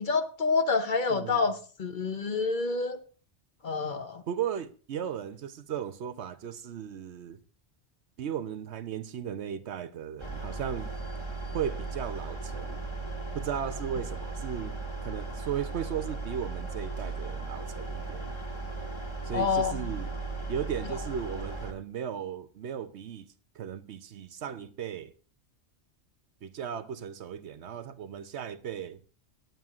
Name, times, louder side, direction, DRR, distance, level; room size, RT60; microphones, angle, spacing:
voice 1, 0.0-3.0 3.6-4.2 19.3-19.7, left 4 dB, 50° left, 0.9 m, -28 dB
voice 2, 1.1-1.5 4.3-7.4 8.2-10.9 11.5-12.8 13.3-18.3 19.2-20.1 20.5-23.3 23.5-25.1 26.4-29.0, right 8 dB, 75° right, 1.0 m, -36 dB
sound 1, 10.2-21.7, right 3 dB, 25° left, 1.5 m, -37 dB
18.5 x 9.0 x 2.4 m
omnidirectional pair, 1.2 m